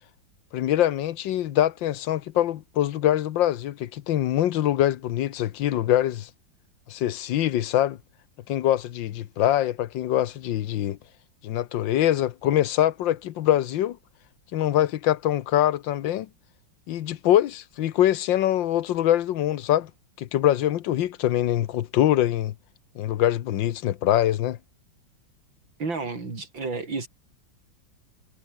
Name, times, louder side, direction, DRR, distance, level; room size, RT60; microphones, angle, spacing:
voice 1, 0.5-6.3 6.9-8.0 8.5-11.0 11.4-14.0 14.5-16.3 16.9-19.9 20.2-22.5 22.9-24.6, left 12 dB, 80° left, 1.6 m, -23 dB
voice 2, 25.8-27.1, right 4 dB, 85° right, 5.1 m, -31 dB
omnidirectional pair, 2.0 m